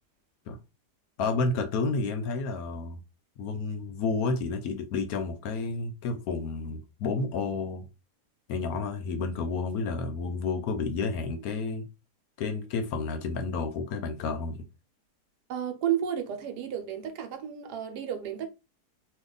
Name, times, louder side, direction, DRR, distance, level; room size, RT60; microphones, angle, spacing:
voice 1, 1.2-3.0 3.4-7.9 8.5-11.8 12.4-14.6, left 4 dB, 70° left, 0.9 m, -30 dB
voice 2, 15.5-18.5, right 9 dB, 75° right, 1.2 m, -32 dB
2.8 x 2.3 x 3.7 m
omnidirectional pair, 1.8 m